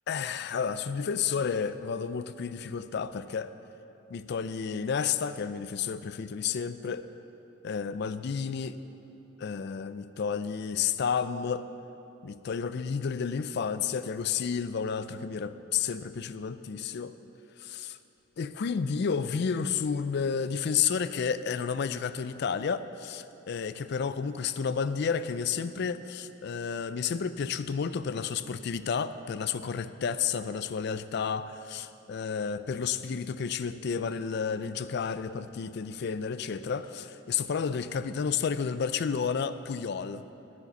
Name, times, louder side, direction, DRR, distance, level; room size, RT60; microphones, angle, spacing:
voice 1, 0.1-3.5 4.1-7.1 7.6-8.8 9.4-11.7 12.2-17.1 17.6-18.0 18.4-40.2, left 6 dB, 55° left, 13 dB, 0.4 m, -31 dB
9.9 x 7.7 x 7.0 m, 2.9 s
head